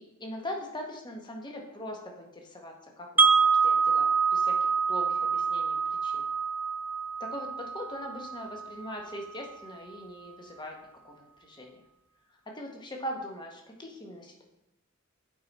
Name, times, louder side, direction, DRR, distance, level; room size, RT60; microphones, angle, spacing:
voice 1, 0.0-5.8 6.0-6.3 7.2-10.8 11.0-11.8 12.5-14.4, left 1 dB, 20° left, 1 dB, 1.0 m, -41 dB
Wind chime, 3.2-9.2, right 5 dB, 10° right, 0.3 m, -26 dB
8.5 x 4.4 x 4.1 m, 0.90 s
head